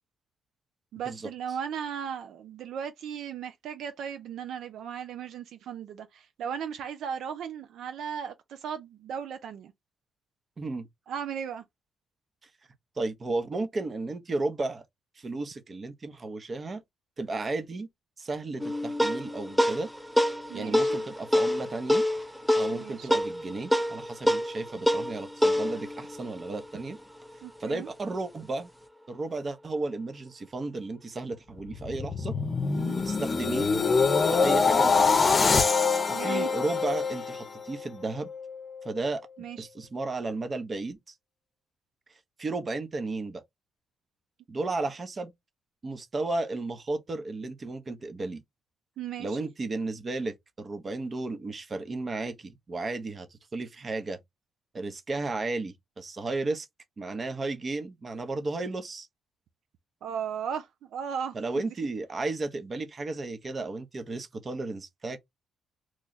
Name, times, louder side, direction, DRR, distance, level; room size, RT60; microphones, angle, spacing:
voice 1, 0.9-9.7 11.1-11.6 20.5-21.0 22.7-23.2 27.4-27.9 32.7-33.0 36.1-36.5 39.4-39.7 49.0-49.5 60.0-61.7, right 8 dB, 75° right, 0.5 m, -36 dB
voice 2, 10.6-10.9 13.0-14.8 15.2-16.8 17.2-17.9 18.2-19.9 20.5-22.0 22.5-27.0 27.6-28.7 29.1-32.3 32.9-33.7 34.3-35.4 36.1-38.3 38.8-39.3 39.6-41.0 42.4-43.4 44.5-45.3 45.8-48.4 49.2-54.2 54.7-56.7 57.0-59.1 61.3-65.2, right 3 dB, 35° right, 0.8 m, -33 dB
sound 1, 18.6-27.4, left 1 dB, 5° right, 0.6 m, -27 dB
sound 2, 31.6-37.8 38.3-38.6, left 4 dB, 40° left, 0.7 m, -24 dB
3.1 x 2.3 x 3.9 m
cardioid pair, 90°, 0 cm